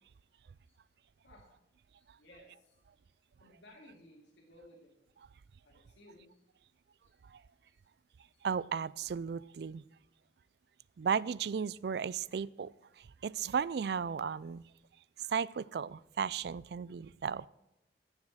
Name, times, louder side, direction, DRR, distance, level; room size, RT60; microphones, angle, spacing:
voice 1, 2.0-2.8 3.4-5.0 5.6-6.4 7.0-7.2 7.7-7.8 8.3-8.4, left 1 dB, 90° left, -1 dB, 2.5 m, -59 dB
voice 2, 8.4-9.8 11.0-12.7 13.0-14.6 15.2-17.5, right 6 dB, 65° right, 21 dB, 0.3 m, -35 dB
16.0 x 7.3 x 6.2 m, 0.89 s
head